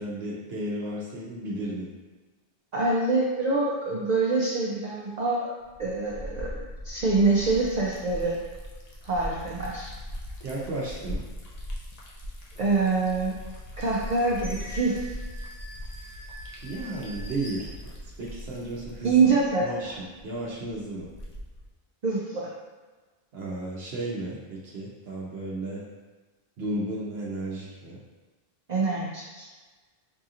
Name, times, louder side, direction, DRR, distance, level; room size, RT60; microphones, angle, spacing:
voice 1, 0.0-1.9 10.4-11.2 16.6-17.7 18.2-19.2 19.6-21.1 23.3-25.9 26.6-28.0, right 1 dB, 85° right, -5 dB, 0.9 m, -33 dB
voice 2, 2.7-6.5 6.8-8.4 9.0-9.9 12.6-13.3 13.8-15.1 19.0-19.9 22.0-22.5 28.7-29.5, right 3 dB, 50° right, -5 dB, 0.6 m, -25 dB
Liquid, 5.6-21.7, equal, 45° left, 0.6 m, -40 dB
sound 1, 13.7-18.4 18.9-19.5, equal, 25° left, 0.9 m, -46 dB
4.6 x 2.8 x 2.5 m, 1.3 s
omnidirectional pair, 1.0 m